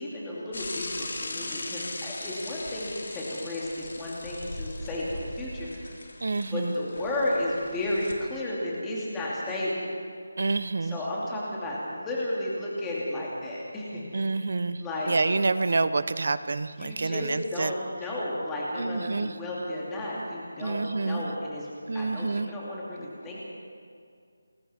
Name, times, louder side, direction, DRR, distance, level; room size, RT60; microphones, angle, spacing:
voice 1, 0.0-5.9 6.5-9.9 10.8-14.4 14.8-15.1 16.8-21.7 21.9-23.5, left 1 dB, 5° left, -6 dB, 2.7 m, -33 dB
Bicycle / Mechanisms, 0.5-8.1, left 2 dB, 60° left, 3.3 m, -39 dB
voice 2, 6.2-6.7 10.4-11.0 14.1-14.8 15.1-17.7 18.8-19.3 20.6-21.3 21.9-22.5, right 3 dB, 45° right, 14 dB, 0.9 m, -28 dB
28.5 x 21.0 x 4.5 m, 2.2 s
figure-of-eight pair, 175°, 0 cm